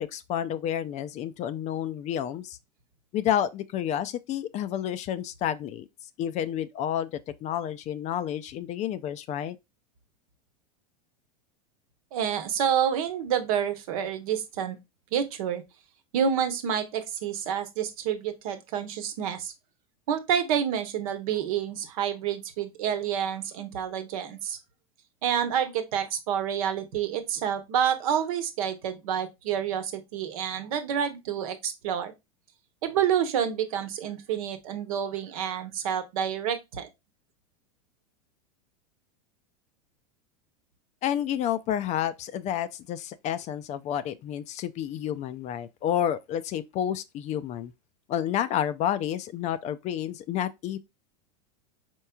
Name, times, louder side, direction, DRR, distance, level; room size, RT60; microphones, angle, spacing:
voice 1, 0.0-2.6 3.1-5.9 6.2-9.6 41.0-47.7 48.1-50.8, left 10 dB, 35° left, 0.4 m, -30 dB
voice 2, 12.1-14.8 15.1-15.6 16.1-19.5 20.1-24.6 25.2-32.1 32.8-36.9, right 8 dB, 65° right, 1.0 m, -28 dB
4.5 x 4.5 x 2.2 m
hypercardioid pair, 95°, 19 cm